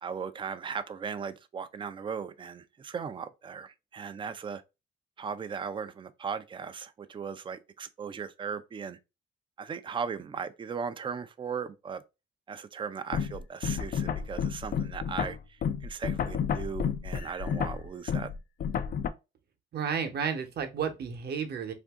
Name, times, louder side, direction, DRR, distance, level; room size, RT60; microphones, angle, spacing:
voice 1, 0.0-4.6 5.2-9.0 9.6-12.0 12.5-18.3, right 6 dB, 25° right, 0.4 m, -37 dB
sound 1, 13.1-19.1, left 7 dB, 50° left, 0.4 m, -31 dB
voice 2, 19.7-21.7, right 7 dB, 55° right, 0.8 m, -32 dB
2.7 x 2.5 x 3.5 m
cardioid pair, 90°, 20 cm